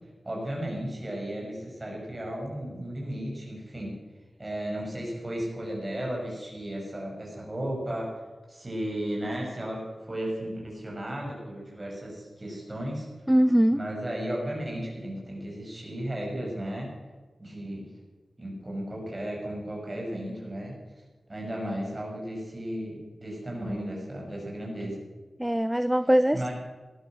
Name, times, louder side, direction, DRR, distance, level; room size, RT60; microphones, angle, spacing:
voice 1, 0.2-3.9 4.4-8.1 8.5-9.8 10.1-13.1 13.7-16.9 17.4-17.9 18.4-20.8 21.3-25.0 26.3-26.5, right 1 dB, 25° right, -2 dB, 7.0 m, -34 dB
voice 2, 13.3-13.8 25.4-26.5, equal, 5° right, 13 dB, 0.5 m, -22 dB
19.0 x 11.5 x 6.3 m, 1.3 s
wide cardioid pair, 115°, 0 cm